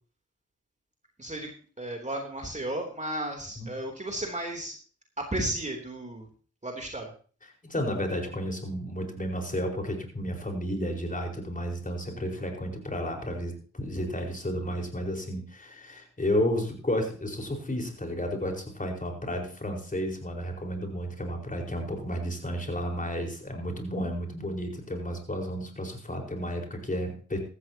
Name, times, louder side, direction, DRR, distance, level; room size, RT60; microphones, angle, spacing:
voice 1, 1.2-1.5 1.8-4.7 5.2-6.3 6.6-7.1, right 1 dB, 25° right, 1 dB, 3.2 m, -33 dB
voice 2, 7.6-27.4, equal, 25° left, 2 dB, 4.8 m, -32 dB
15.0 x 14.0 x 2.9 m, 0.40 s
cardioid pair, 60°, 30 cm